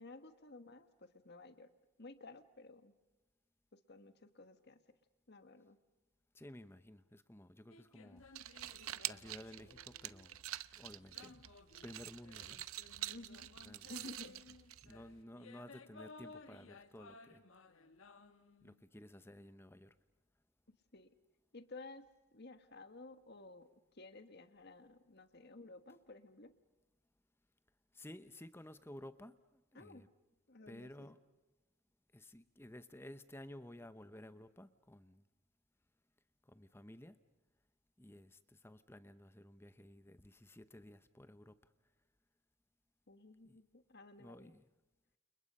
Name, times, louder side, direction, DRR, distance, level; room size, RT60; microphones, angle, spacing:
voice 1, 0.0-1.7 2.0-2.9 3.7-4.8 5.3-5.8 13.1-13.5 13.9-14.4 20.9-21.1 21.5-22.0 22.3-23.7 23.9-26.5 29.7-30.0 30.5-31.1 43.1-44.5, left 2 dB, 50° left, 10 dB, 1.5 m, -54 dB
voice 2, 6.3-8.3 9.1-10.4 10.7-11.4 11.8-12.6 13.6-13.9 14.8-17.4 18.6-20.0 27.9-30.1 30.7-31.2 32.1-35.2 36.4-37.2 38.0-41.7 43.4-43.6 44.2-44.6, left 1 dB, 10° left, 12 dB, 0.8 m, -54 dB
sound 1, 7.7-10.4 11.1-18.8, left 3 dB, 65° left, 1.5 m, -59 dB
sound 2, 8.2-15.2, right 13 dB, 75° right, 0.8 m, -47 dB
29.5 x 29.5 x 5.5 m, 1.0 s
head